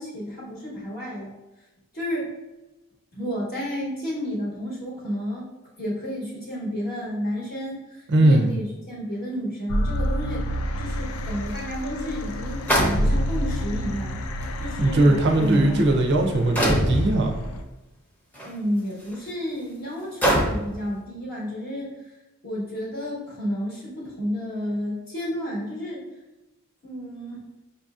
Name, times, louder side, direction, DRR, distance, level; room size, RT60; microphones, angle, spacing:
voice 1, 0.0-1.3 1.9-2.3 3.1-5.4 5.8-14.2 14.6-15.9 18.4-22.1 22.4-26.0 26.8-27.5, equal, 45° left, -5 dB, 0.9 m, -31 dB
voice 2, 8.1-8.5 14.8-17.3, right 1 dB, 50° right, 3 dB, 0.5 m, -19 dB
sound 1, 9.7-17.6, equal, 75° left, 0.4 m, -29 dB
sound 2, 11.6-11.7 12.7-13.5 14.4-14.5 15.3-15.5 16.6-17.0 18.3-18.5 19.1-19.2 20.2-20.7, equal, 5° left, 0.7 m, -22 dB
5.4 x 2.7 x 2.4 m, 1.0 s
head